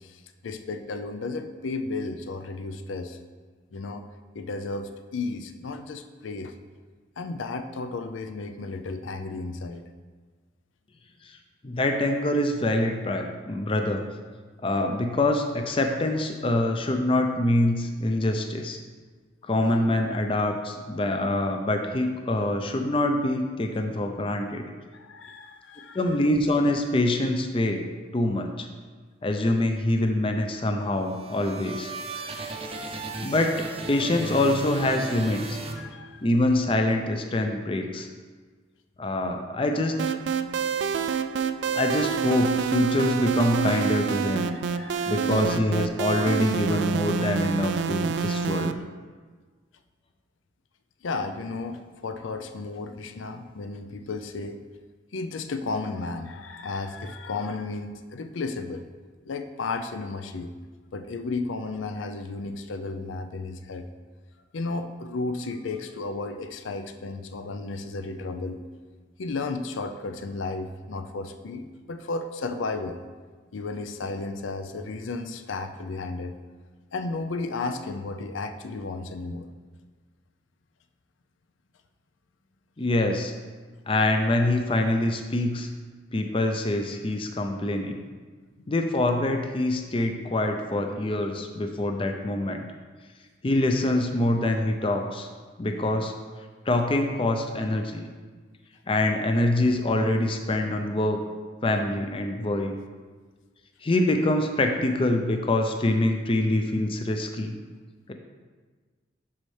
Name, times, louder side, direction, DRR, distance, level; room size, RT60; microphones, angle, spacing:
voice 1, 0.0-3.2 3.7-4.0 4.3-6.6 7.2-9.8 24.9-26.1 34.9-35.2 35.5-36.3 44.5-45.6 51.0-54.7 55.1-58.8 59.3-60.5 60.9-63.9 64.5-68.6 69.2-73.0 73.5-76.4 76.9-79.5, left 3 dB, 85° left, 8 dB, 0.5 m, -33 dB
voice 2, 11.6-14.1 14.6-18.8 19.4-24.6 25.9-27.8 28.1-28.7 29.2-32.5 33.2-33.5 33.9-35.6 36.2-38.1 39.0-40.0 41.7-44.5 45.1-48.8 82.8-83.3 83.9-85.7 86.1-88.0 88.7-92.6 93.4-95.3 95.6-96.1 96.7-98.1 98.9-101.2 101.6-102.8 103.8-107.6, left 1 dB, 30° left, 5 dB, 0.5 m, -25 dB
sound 1, 30.8-36.4, right 3 dB, 30° right, 0.6 m, -36 dB
sound 2, 40.0-48.7, right 6 dB, 65° right, 0.3 m, -27 dB
11.5 x 4.3 x 3.3 m, 1.4 s
head